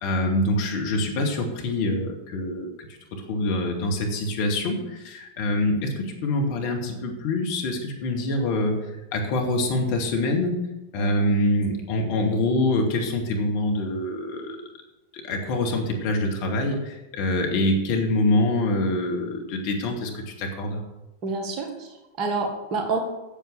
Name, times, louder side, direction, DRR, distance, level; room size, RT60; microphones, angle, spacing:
voice 1, 0.0-2.7 3.1-8.8 9.1-10.6 10.9-14.6 15.1-20.8, left 1 dB, 45° left, 1 dB, 2.3 m, -25 dB
voice 2, 11.0-11.3 21.2-23.0, right 3 dB, 35° right, 3 dB, 1.9 m, -29 dB
8.9 x 7.4 x 7.6 m, 0.99 s
figure-of-eight pair, 90°, 0 cm